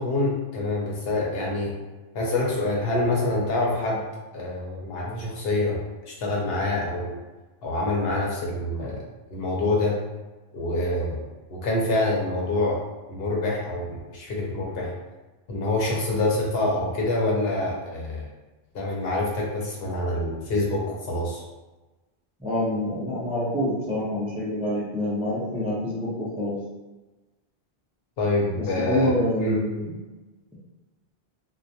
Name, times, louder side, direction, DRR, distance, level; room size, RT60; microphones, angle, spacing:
voice 1, 0.0-1.7 2.1-4.0 4.3-5.8 6.1-7.1 7.6-9.0 9.3-9.9 10.5-11.2 11.5-12.8 13.1-14.9 15.5-18.2 18.7-21.4 28.2-29.1 29.4-29.6, left 2 dB, 75° left, -3 dB, 0.8 m, -26 dB
voice 2, 22.4-26.6 28.6-29.9, left 1 dB, 10° right, -7 dB, 0.4 m, -26 dB
2.2 x 2.1 x 2.7 m, 1.2 s
omnidirectional pair, 1.1 m